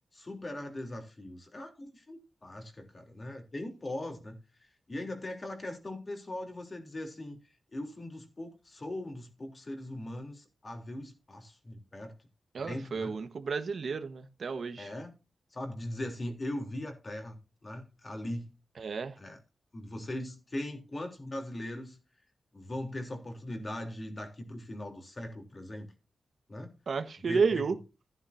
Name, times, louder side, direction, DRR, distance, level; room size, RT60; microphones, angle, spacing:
voice 1, 0.1-4.4 4.9-7.4 7.7-12.1 12.6-13.1 14.8-15.1 15.5-18.5 19.2-19.4 19.7-22.0 22.5-25.9 26.5-26.7 27.2-27.7, left 1 dB, 30° left, 3.5 m, -40 dB
voice 2, 12.5-14.9 18.8-19.1 26.9-27.8, right 5 dB, 65° right, 1.4 m, -31 dB
15.0 x 9.7 x 2.7 m
wide cardioid pair, 135°, 0 cm